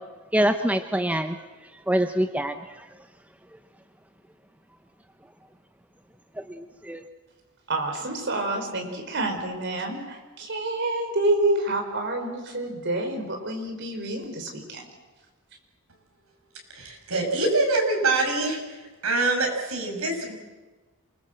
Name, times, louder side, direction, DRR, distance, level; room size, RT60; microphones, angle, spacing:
voice 1, 0.3-1.4 1.9-2.6 6.5-7.0, right 1 dB, 5° right, 7 dB, 0.7 m, -24 dB
voice 2, 7.7-14.8, right 2 dB, 50° right, 3 dB, 4.6 m, -28 dB
voice 3, 16.7-18.6 19.0-20.3, right 2 dB, 70° right, 2 dB, 6.2 m, -24 dB
27.5 x 21.5 x 7.7 m, 1.3 s
head